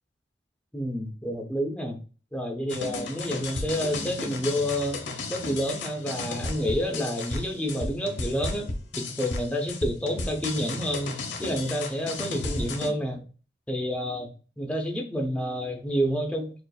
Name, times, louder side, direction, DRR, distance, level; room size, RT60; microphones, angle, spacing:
voice 1, 0.7-2.0 2.3-8.7 9.0-13.2 13.7-14.3 14.6-16.5, equal, 5° left, 1 dB, 0.6 m, -29 dB
sound 1, 2.7-12.9, left 3 dB, 80° left, 0.8 m, -34 dB
6.7 x 2.5 x 2.3 m, 0.36 s
head